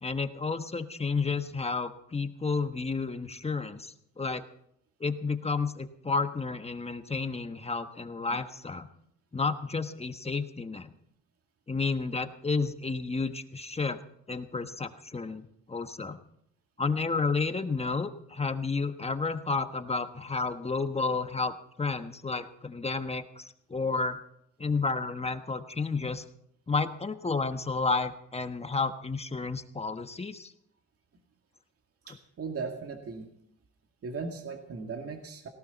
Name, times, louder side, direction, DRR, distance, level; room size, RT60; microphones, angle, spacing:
voice 1, 0.0-4.4 5.0-8.9 9.3-10.9 11.7-14.0 14.3-16.2 16.8-24.2 24.6-26.2 26.7-30.5, left 4 dB, 20° left, 8 dB, 1.2 m, -31 dB
voice 2, 32.1-33.3 34.0-35.5, right 4 dB, 50° right, 3 dB, 2.2 m, -37 dB
18.5 x 18.0 x 4.1 m, 0.72 s
cardioid pair, 90°, 30 cm